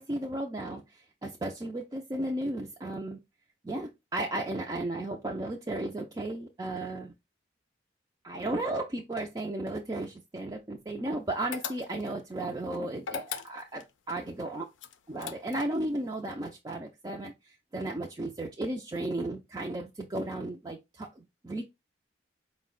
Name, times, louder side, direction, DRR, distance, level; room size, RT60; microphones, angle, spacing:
voice 1, 0.0-3.2 3.6-7.1 8.2-14.6 15.1-21.6, right 1 dB, 20° right, 0.4 m, -34 dB
sound 1, 11.5-12.2 13.0-13.9 14.8-15.8, left 7 dB, 90° left, 0.5 m, -38 dB
4.8 x 2.1 x 3.7 m
head